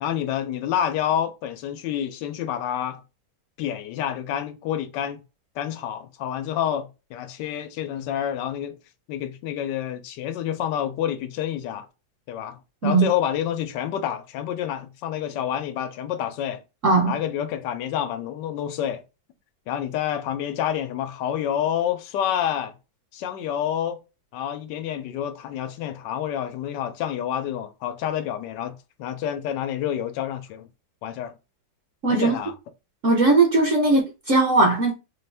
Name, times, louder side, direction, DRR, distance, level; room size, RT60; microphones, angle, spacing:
voice 1, 0.0-3.0 3.6-5.2 5.6-8.8 9.1-11.9 12.3-16.6 17.0-19.0 19.7-22.7 23.1-24.0 24.3-30.7 31.0-31.3 32.1-32.5, left 10 dB, 75° left, 1.2 m, -28 dB
voice 2, 32.0-32.3 33.0-34.9, right 3 dB, 50° right, 1.1 m, -19 dB
4.2 x 2.5 x 3.3 m
omnidirectional pair, 2.0 m